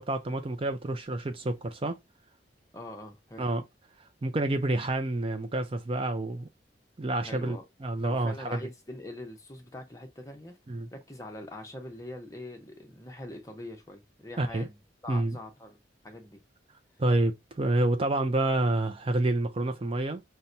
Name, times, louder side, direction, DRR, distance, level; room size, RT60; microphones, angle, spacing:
voice 1, 0.0-2.0 3.4-3.6 4.2-6.5 7.0-8.6 10.7-10.9 14.4-14.7 15.1-15.4 17.0-20.2, right 2 dB, 30° right, 0.4 m, -28 dB
voice 2, 2.7-3.5 7.2-7.6 8.0-10.6 10.9-15.8 16.0-16.4, left 1 dB, 20° left, 0.8 m, -43 dB
5.5 x 2.2 x 2.6 m
head